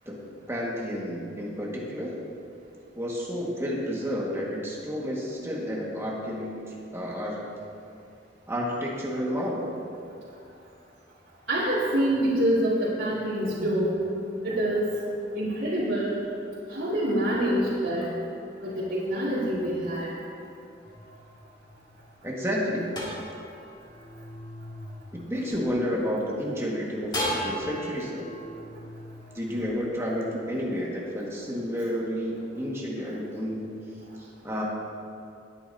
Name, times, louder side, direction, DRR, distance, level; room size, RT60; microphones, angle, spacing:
voice 1, 0.1-2.2 2.9-7.5 8.5-9.8 22.2-23.0 25.1-28.3 29.3-33.8 34.2-34.6, equal, 15° right, -4 dB, 1.8 m, -31 dB
voice 2, 11.5-14.0 14.4-14.9 15.3-16.2 16.7-18.1 18.6-20.1, right 1 dB, 90° right, -11 dB, 2.6 m, -26 dB
sound 1, 20.8-26.1 27.1-30.5, equal, 25° left, 2.2 m, -37 dB
20.5 x 8.8 x 2.8 m, 2.6 s
head